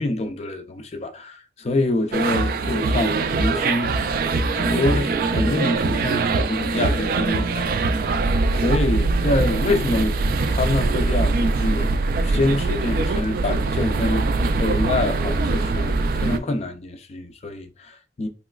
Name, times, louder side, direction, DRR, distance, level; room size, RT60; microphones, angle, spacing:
voice 1, 0.0-4.0 4.5-8.1 8.5-10.2 10.5-14.3 14.6-18.3, left 2 dB, 35° left, 0.4 m, -26 dB
sound 1, 2.1-16.4, right 3 dB, 50° right, 0.3 m, -22 dB
3.1 x 3.0 x 2.3 m
head